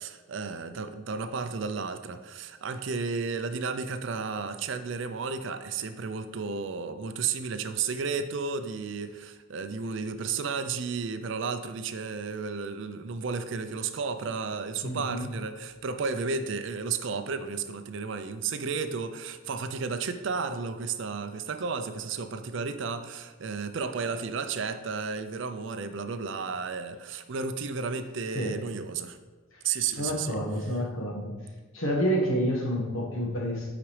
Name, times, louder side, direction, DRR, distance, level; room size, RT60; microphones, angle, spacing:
voice 1, 0.0-29.2 29.6-30.4, right 5 dB, 60° right, 9 dB, 0.4 m, -33 dB
voice 2, 14.8-15.3 28.3-28.6 29.5-29.6 30.0-31.3 31.7-33.7, equal, 70° left, -1 dB, 1.4 m, -29 dB
8.7 x 4.9 x 3.2 m, 1.3 s
head